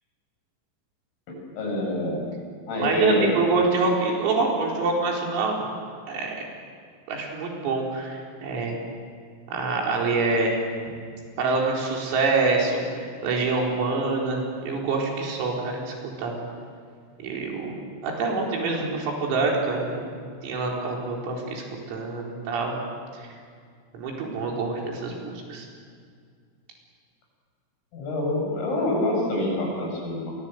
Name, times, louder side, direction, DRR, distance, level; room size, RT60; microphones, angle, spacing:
voice 1, 1.3-2.2 2.7-3.3 27.9-30.3, left 1 dB, 75° left, 0 dB, 9.8 m, -26 dB
voice 2, 2.7-5.6 6.1-6.5 7.1-8.8 9.5-10.6 11.4-16.4 17.2-17.8 18.0-20.1 20.4-22.8 23.1-23.3 23.9-25.7, right 3 dB, 90° right, -1 dB, 7.0 m, -26 dB
28.0 x 23.5 x 8.0 m, 2.1 s
omnidirectional pair, 5.9 m